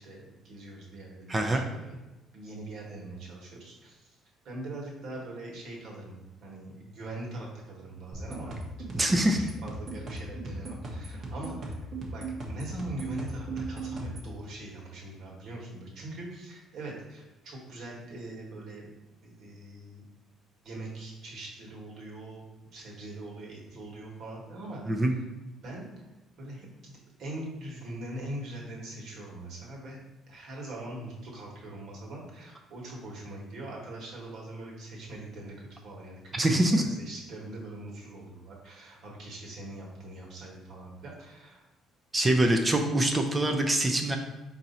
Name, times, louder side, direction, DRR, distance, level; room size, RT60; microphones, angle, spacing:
voice 1, 0.0-1.9 2.3-4.1 4.4-6.2 6.4-8.6 8.9-9.3 9.6-11.8 12.1-18.9 19.2-20.0 20.6-22.4 22.7-25.1 25.6-25.8 26.4-30.0 30.3-41.6, right 1 dB, 65° right, -2 dB, 1.4 m, -42 dB
voice 2, 1.3-1.6 8.9-9.4 24.9-25.1 36.3-36.8 42.1-44.2, right 1 dB, 20° right, 3 dB, 0.5 m, -24 dB
sound 1, 8.1-14.3, right 2 dB, 45° right, 1.0 m, -37 dB
4.5 x 2.7 x 4.1 m, 1.0 s
cardioid pair, 110°, 0 cm